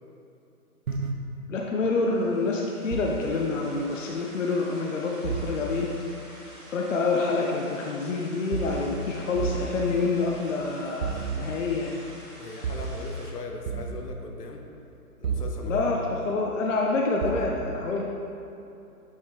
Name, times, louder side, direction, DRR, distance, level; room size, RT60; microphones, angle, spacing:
sound 1, 0.9-1.1 2.9-3.2 5.2-5.5 8.5-8.8 9.3-9.7 11.0-11.5 12.6-12.9 13.7-14.0 15.2-15.5 17.2-17.5, right 6 dB, 60° right, 0.6 m, -30 dB
voice 1, 1.5-5.9 6.7-12.0 15.6-18.1, left 3 dB, 55° left, -1 dB, 0.6 m, -27 dB
sound 2, 1.9-13.3, equal, 15° right, 1.2 m, -48 dB
voice 2, 12.4-14.6 15.2-15.9, left 3 dB, 80° left, 2 dB, 1.0 m, -39 dB
8.0 x 3.5 x 3.5 m, 2.8 s
hypercardioid pair, 170°, 46 cm